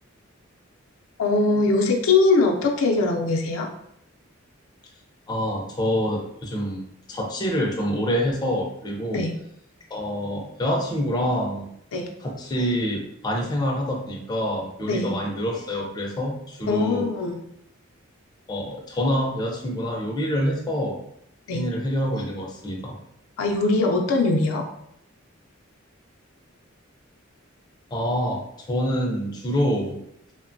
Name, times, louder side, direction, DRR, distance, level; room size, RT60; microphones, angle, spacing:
voice 1, 1.2-3.7 9.1-9.3 11.9-12.1 14.9-15.1 16.7-17.4 21.5-21.6 23.4-24.6, left 3 dB, 85° left, 1 dB, 0.4 m, -21 dB
voice 2, 5.3-6.8 7.1-9.3 9.9-11.7 12.2-17.1 18.5-21.0 21.5-23.0 27.9-28.4 28.7-30.0, equal, 20° left, -1 dB, 0.4 m, -26 dB
2.9 x 2.1 x 2.5 m, 0.74 s
head